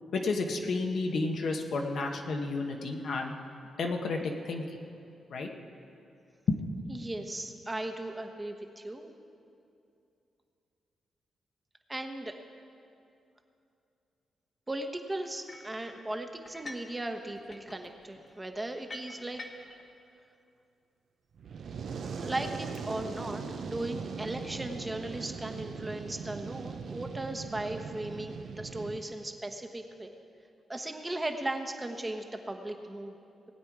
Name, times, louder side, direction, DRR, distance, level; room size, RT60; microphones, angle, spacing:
voice 1, 0.1-3.3 3.8-4.6 5.3-5.5 6.5-6.6, left 3 dB, 65° left, 2 dB, 1.2 m, -31 dB
voice 2, 6.9-9.1 11.9-12.3 14.7-19.4 22.2-30.1 30.7-33.2, right 1 dB, 15° right, 4 dB, 1.2 m, -37 dB
sound 1, 15.5-15.8 16.4-16.9 17.2-19.8, left 2 dB, 40° left, 1.4 m, -46 dB
Fire, 21.4-29.0, right 5 dB, 65° right, 0.8 m, -40 dB
19.5 x 8.8 x 4.8 m, 2.6 s
cardioid pair, 85°, 0 cm